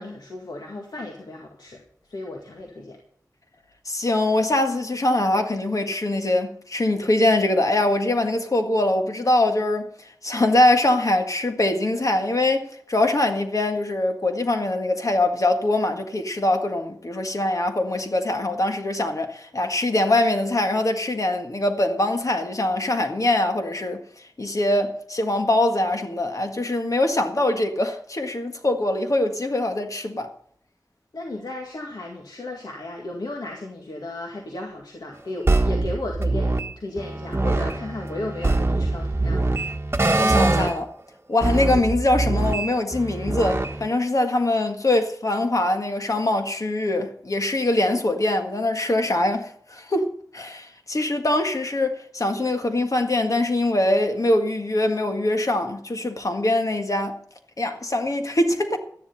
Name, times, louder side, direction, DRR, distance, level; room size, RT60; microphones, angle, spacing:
voice 1, 0.0-3.0 31.1-39.5, left 2 dB, 80° left, 2.0 m, -35 dB
voice 2, 3.8-30.3 40.2-40.9 41.3-57.2 57.6-58.8, left 1 dB, 55° left, 1.7 m, -23 dB
sound 1, 35.5-36.7 37.0-40.8 41.4-43.8, right 2 dB, 35° right, 1.2 m, -23 dB
12.5 x 10.5 x 5.5 m
wide cardioid pair, 70°, 7 cm